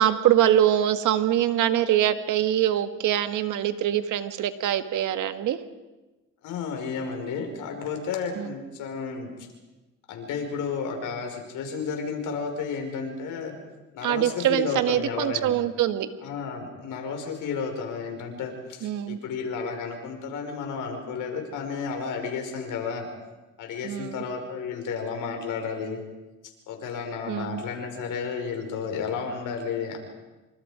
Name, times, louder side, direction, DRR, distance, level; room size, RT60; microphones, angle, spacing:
voice 1, 0.0-5.6 8.4-8.5 14.0-16.1 18.8-19.2 23.8-24.2 27.3-27.6, right 11 dB, 80° right, 10 dB, 1.8 m, -24 dB
voice 2, 6.4-9.3 10.1-13.6 13.9-15.5 16.2-23.1 23.6-26.0 26.7-30.0, left 5 dB, 85° left, 3 dB, 5.5 m, -32 dB
28.0 x 26.0 x 5.2 m, 1.1 s
cardioid pair, 90°, 30 cm